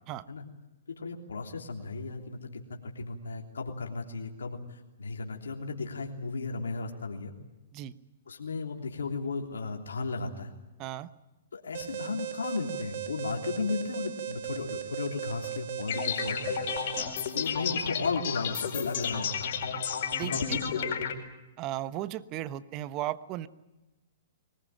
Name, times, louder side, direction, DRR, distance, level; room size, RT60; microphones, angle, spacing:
voice 1, 0.9-7.3 8.3-10.5 11.5-16.6 17.3-19.6 20.3-20.9, left 4 dB, 90° left, 1 dB, 3.2 m, -35 dB
Alarm, 11.7-17.0, right 11 dB, 60° right, 1.9 m, -38 dB
sound 1, 15.9-21.1, left 7 dB, 60° left, 4.7 m, -32 dB
voice 2, 20.1-20.6 21.6-23.5, right 13 dB, 35° right, 15 dB, 1.1 m, -36 dB
23.0 x 20.0 x 9.0 m, 1.0 s
hypercardioid pair, 135°, 0 cm